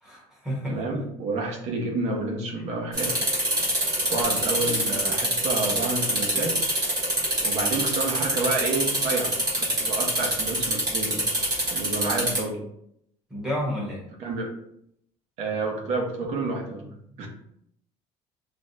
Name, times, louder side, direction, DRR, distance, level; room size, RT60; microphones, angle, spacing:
voice 1, 0.0-1.0 13.3-14.0, equal, 5° right, -5 dB, 0.9 m, -31 dB
voice 2, 0.7-3.1 4.1-6.6 7.4-11.3 11.7-12.6 14.2-14.5 15.4-17.3, right 3 dB, 55° right, 0 dB, 0.7 m, -29 dB
sound 1, 2.9-12.4, right 1 dB, 30° right, 1.2 m, -25 dB
2.5 x 2.1 x 3.9 m, 0.73 s
cardioid pair, 175°, 14 cm